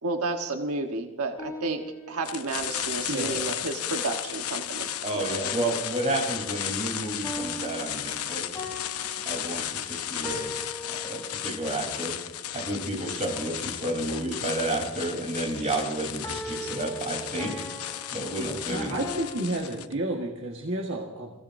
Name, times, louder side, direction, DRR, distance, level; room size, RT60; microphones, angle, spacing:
voice 1, 0.0-5.4, right 3 dB, 85° right, 4 dB, 1.3 m, -32 dB
sound 1, 1.4-2.8 7.2-11.8 16.2-19.5, left 1 dB, 15° left, 3.0 m, -40 dB
sound 2, 2.2-19.9, left 11 dB, 85° left, 0.8 m, -34 dB
voice 2, 3.1-3.4 5.6-5.8 18.7-21.3, right 2 dB, 55° right, 0 dB, 1.6 m, -31 dB
voice 3, 5.0-8.7 9.3-10.5 10.9-12.2 12.5-17.6 18.1-19.0, right 1 dB, 30° right, 0 dB, 3.7 m, -31 dB
28.0 x 16.5 x 2.7 m, 1.2 s
head